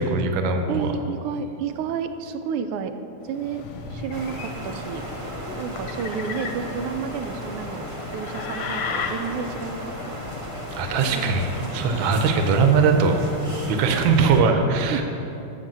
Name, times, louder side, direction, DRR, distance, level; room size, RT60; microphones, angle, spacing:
voice 1, 0.0-0.9 10.7-13.2 13.7-15.0, right 4 dB, 70° right, 5 dB, 1.5 m, -20 dB
voice 2, 0.7-2.9 3.2-5.0 5.5-9.8 10.1-10.2 11.1-11.8 14.2-14.3 14.9-15.0, right 6 dB, 90° right, 8 dB, 1.5 m, -31 dB
sound 1, 3.2-13.0, left 5 dB, 65° left, 1.2 m, -36 dB
sound 2, 3.6-7.2 7.6-7.9, equal, 40° left, 0.6 m, -42 dB
sound 3, 4.1-14.4, equal, 25° right, 0.6 m, -36 dB
6.9 x 6.5 x 7.4 m, 2.8 s
omnidirectional pair, 2.4 m